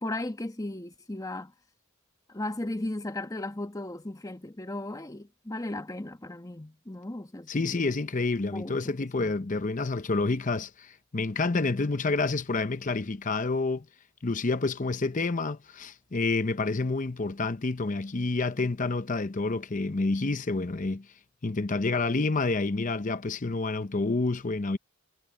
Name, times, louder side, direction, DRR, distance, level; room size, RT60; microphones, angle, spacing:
voice 1, 0.0-1.5 2.3-7.8 8.5-9.3, left 1 dB, 15° left, 1.1 m, -36 dB
voice 2, 7.5-13.9 14.2-21.1 21.4-24.8, left 3 dB, 40° left, 0.7 m, -28 dB
head